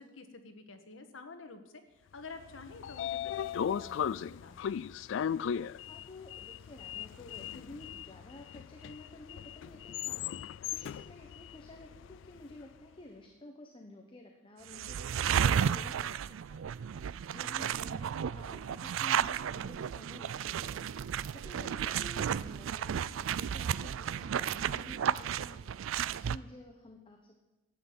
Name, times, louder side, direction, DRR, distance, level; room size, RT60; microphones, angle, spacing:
voice 1, 0.0-4.6 4.8-5.0, left 3 dB, 85° left, 7 dB, 1.4 m, -50 dB
Sliding door, 2.4-12.5, left 8 dB, 65° left, 0.3 m, -38 dB
voice 2, 5.8-27.6, left 1 dB, 25° left, 3 dB, 1.1 m, -52 dB
sound 1, 14.7-26.4, right 8 dB, 80° right, 0.4 m, -33 dB
11.5 x 8.9 x 7.6 m, 1.1 s
head